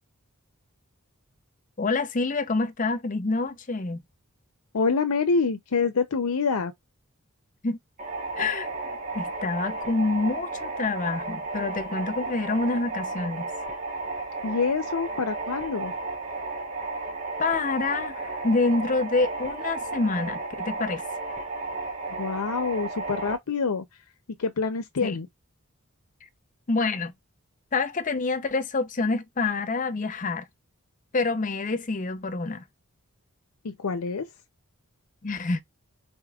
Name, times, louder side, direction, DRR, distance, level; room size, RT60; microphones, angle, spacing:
voice 1, 1.8-4.0 7.6-7.8 8.4-8.7 9.1-13.5 17.4-21.0 25.0-25.2 26.7-27.1 27.7-30.4 31.1-32.6 35.2-35.6, left 3 dB, 35° left, 0.6 m, -27 dB
voice 2, 4.7-6.7 14.4-15.9 22.2-23.9 24.4-25.3 33.6-34.3, left 5 dB, 85° left, 0.6 m, -26 dB
sound 1, 8.0-23.4, right 3 dB, 35° right, 1.9 m, -33 dB
5.0 x 4.1 x 2.3 m
head